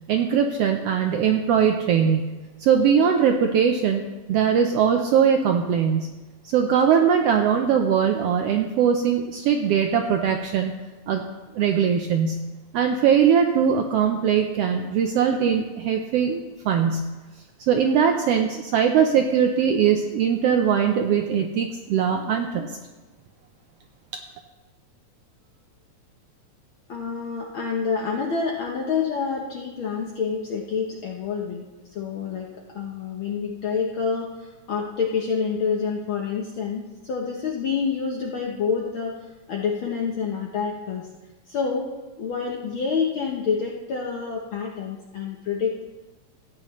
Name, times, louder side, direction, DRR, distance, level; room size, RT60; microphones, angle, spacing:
voice 1, 0.1-2.3 2.6-4.0 4.3-6.1 6.4-10.7 11.1-11.2 11.5-12.4 12.7-17.1 17.7-22.7, right 7 dB, 75° right, 4 dB, 1.4 m, -21 dB
voice 2, 26.9-31.6 31.9-32.5 32.7-39.2 39.5-41.1 41.5-41.8 42.2-45.8, left 5 dB, 70° left, -1 dB, 1.2 m, -27 dB
14.5 x 9.3 x 3.1 m, 1.2 s
omnidirectional pair, 3.4 m